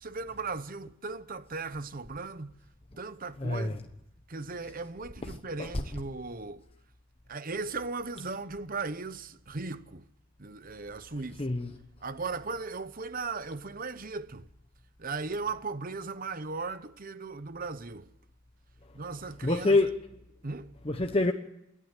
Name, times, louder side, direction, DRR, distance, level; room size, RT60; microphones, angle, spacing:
voice 1, 0.0-2.5 3.0-3.8 4.3-6.6 7.3-10.1 10.4-11.5 12.0-14.5 15.0-18.1 18.9-19.8 20.4-20.7, right 4 dB, 40° right, 1.0 m, -37 dB
voice 2, 3.4-3.8 5.6-5.7 11.4-11.7 19.4-20.0 20.8-21.3, left 2 dB, 25° left, 1.0 m, -26 dB
27.5 x 11.0 x 8.3 m
head